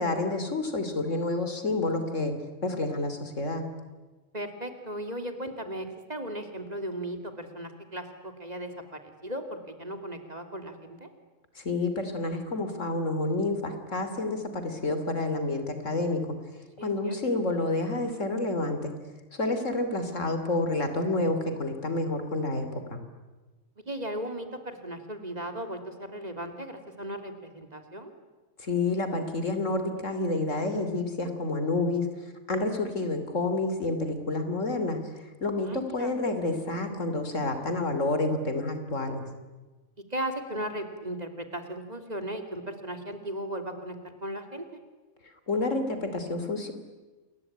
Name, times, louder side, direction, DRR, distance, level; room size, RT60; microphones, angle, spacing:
voice 1, 0.0-2.3 2.6-3.7 11.6-16.4 16.8-18.9 19.3-23.0 28.6-32.1 32.5-39.3 45.5-46.7, left 2 dB, 80° left, 8 dB, 3.3 m, -29 dB
voice 2, 4.3-11.1 16.8-17.4 23.9-28.1 35.6-36.1 40.1-44.6, right 1 dB, 35° right, 6 dB, 3.0 m, -37 dB
28.0 x 21.5 x 9.9 m, 1.2 s
omnidirectional pair, 1.3 m